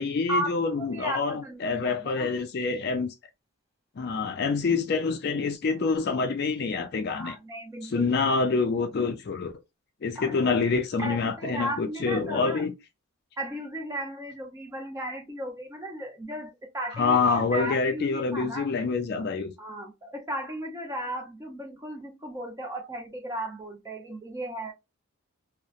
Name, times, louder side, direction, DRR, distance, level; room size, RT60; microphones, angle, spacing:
voice 1, 0.0-3.1 4.0-7.4 7.9-9.5 10.0-12.7 17.0-19.5, left 4 dB, 45° left, 0.3 m, -26 dB
voice 2, 0.8-2.3 7.1-8.2 10.2-10.6 11.0-12.6 13.4-18.7 19.6-24.7, right 1 dB, 15° right, 0.4 m, -35 dB
2.7 x 2.0 x 2.3 m
head